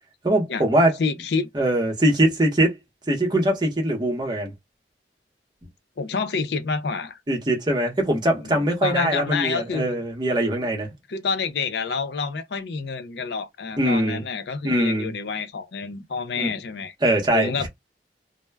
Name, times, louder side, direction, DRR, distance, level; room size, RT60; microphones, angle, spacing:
voice 1, 0.2-0.9 1.5-2.7 3.1-4.5 7.3-10.9 13.8-14.2 14.6-15.1 16.4-16.5 17.0-17.7, right 1 dB, 25° right, 0.8 m, -22 dB
voice 2, 1.0-1.5 6.0-7.2 8.4-10.0 11.1-16.9 17.3-17.7, left 5 dB, 65° left, 0.5 m, -28 dB
2.1 x 2.0 x 3.2 m
head